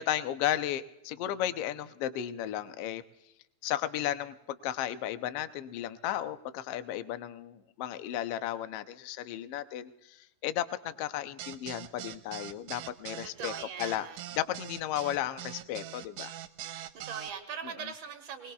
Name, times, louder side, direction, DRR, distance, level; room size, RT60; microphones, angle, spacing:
voice 1, 0.0-3.0 3.6-13.5 13.8-14.1 14.3-16.3 17.6-17.9, left 12 dB, 80° left, 11 dB, 1.4 m, -34 dB
sound 1, 11.4-17.3, right 12 dB, 75° right, 2.0 m, -42 dB
voice 2, 13.2-14.2 16.9-18.5, right 7 dB, 60° right, 6 dB, 2.5 m, -41 dB
23.0 x 20.5 x 2.3 m, 0.89 s
omnidirectional pair, 3.5 m